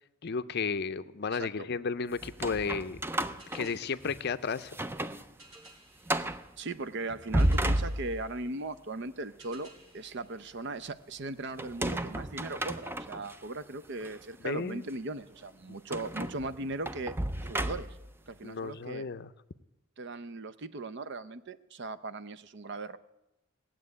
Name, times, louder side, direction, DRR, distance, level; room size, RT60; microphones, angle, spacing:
voice 1, 0.2-3.0 3.5-4.8 14.4-14.8 18.4-19.3, left 5 dB, 50° left, 13 dB, 0.5 m, -33 dB
voice 2, 1.3-1.7 6.6-9.7 9.9-17.1 17.4-18.0 18.3-19.1 20.0-23.0, right 2 dB, 55° right, 14 dB, 0.6 m, -38 dB
sound 1, 2.2-4.3 4.7-5.2 5.6-5.7 6.1-6.5 7.1-8.4 11.6-13.4 14.0-14.1 15.9-18.1, right 1 dB, 10° right, 0.4 m, -32 dB
sound 2, 3.4-11.3, right 2 dB, 75° right, 5.3 m, -59 dB
18.0 x 7.6 x 9.6 m, 0.95 s
head